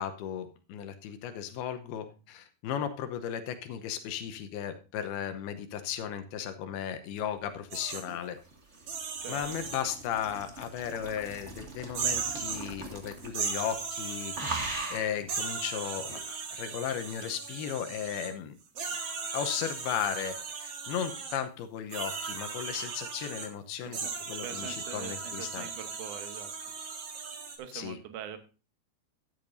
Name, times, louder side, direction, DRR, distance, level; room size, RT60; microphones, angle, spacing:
voice 1, 0.0-8.4 9.3-18.6 19.3-20.3 20.6-25.7 27.7-28.0, left 9 dB, 80° left, 9 dB, 2.8 m, -36 dB
sound 1, 7.7-13.5 13.7-14.0 14.3-15.2 16.1-16.2, right 2 dB, 30° right, 1.2 m, -40 dB
sound 2, 7.7-8.0 8.8-9.8 10.9-11.0 11.9-12.7 13.2-15.0 15.3-18.3 18.8-21.4 21.9-23.5 23.9-27.6, right 5 dB, 50° right, 2.2 m, -37 dB
voice 2, 24.4-26.5 27.6-28.4, right 9 dB, 65° right, 8 dB, 2.2 m, -43 dB
13.0 x 10.5 x 2.7 m, 0.34 s
omnidirectional pair, 4.6 m